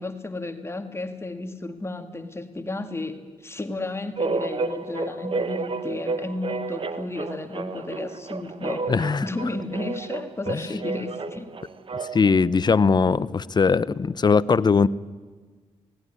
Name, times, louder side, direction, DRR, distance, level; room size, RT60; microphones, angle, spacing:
voice 1, 0.0-11.5, left 2 dB, 25° left, 6 dB, 1.9 m, -33 dB
sound 1, 4.2-12.4, right 4 dB, 50° right, 1.3 m, -31 dB
voice 2, 8.9-9.2 10.5-10.6 12.1-14.9, left 5 dB, 40° left, 17 dB, 0.7 m, -20 dB
18.0 x 17.5 x 9.9 m, 1.4 s
cardioid pair, 65°, 11 cm